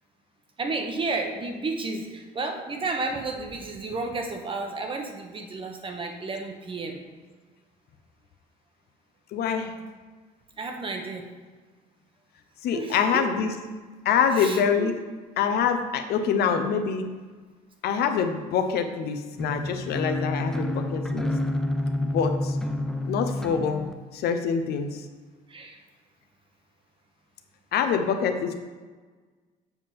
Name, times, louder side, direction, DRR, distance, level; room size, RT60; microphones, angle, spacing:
voice 1, 0.6-7.0 10.6-11.3 12.7-13.4 14.4-14.9 25.5-25.8, right 3 dB, 30° right, 3 dB, 1.0 m, -32 dB
voice 2, 9.3-9.7 12.6-13.6 14.0-15.0 15.4-17.1 17.8-21.3 22.0-22.6 23.0-25.1 27.7-28.5, left 7 dB, 70° left, 7 dB, 0.7 m, -25 dB
sound 1, 19.4-23.9, left 1 dB, 5° left, 0.4 m, -29 dB
7.2 x 3.5 x 5.8 m, 1.4 s
cardioid pair, 110°, 17 cm